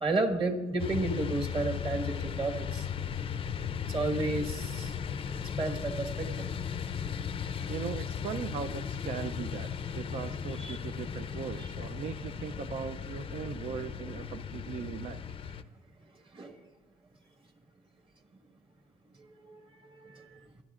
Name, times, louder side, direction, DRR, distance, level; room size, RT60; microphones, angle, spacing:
voice 1, 0.0-2.9 3.9-4.9 5.6-6.3 10.6-10.8 11.6-11.7 16.3-16.6 19.4-19.6 20.0-20.4, right 2 dB, 30° right, 5 dB, 1.6 m, -32 dB
sound 1, 0.8-15.6, left 7 dB, 30° left, 0.5 m, -36 dB
voice 2, 7.7-15.2, right 7 dB, 45° right, 9 dB, 0.5 m, -39 dB
26.0 x 10.5 x 2.5 m, 1.2 s
cardioid pair, 110°, 17 cm